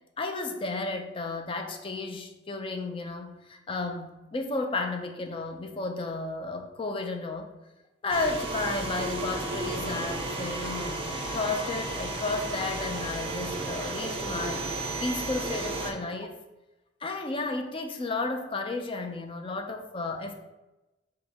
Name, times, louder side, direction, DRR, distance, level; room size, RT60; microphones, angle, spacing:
voice 1, 0.2-7.5 8.0-11.0 11.3-14.7 15.0-16.3 17.0-20.3, left 3 dB, 30° left, 5 dB, 0.4 m, -33 dB
sound 1, 8.1-15.9, right 2 dB, 30° right, 0.6 m, -33 dB
3.5 x 3.0 x 4.3 m, 1.0 s
head